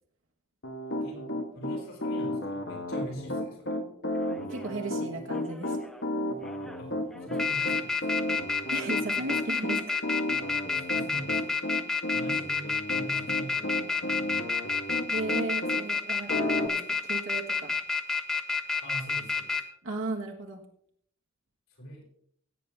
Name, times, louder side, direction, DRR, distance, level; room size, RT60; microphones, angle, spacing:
Piano, 0.6-15.8 16.3-16.7, left 1 dB, 60° left, 1.3 m, -32 dB
voice 1, 1.5-3.8 6.8-8.2 10.7-11.6 12.1-14.4 18.8-19.6 21.7-22.0, right 1 dB, 75° left, -2 dB, 6.1 m, -44 dB
sound 1, 4.3-4.7 5.3-6.0 6.5-6.8 7.1-19.6, left 4 dB, 5° left, 0.6 m, -29 dB
voice 2, 4.4-5.8 8.7-10.0 15.1-16.8 17.1-17.7 19.8-20.6, right 2 dB, 70° right, 0 dB, 1.5 m, -35 dB
17.0 x 8.6 x 3.5 m, 0.65 s
head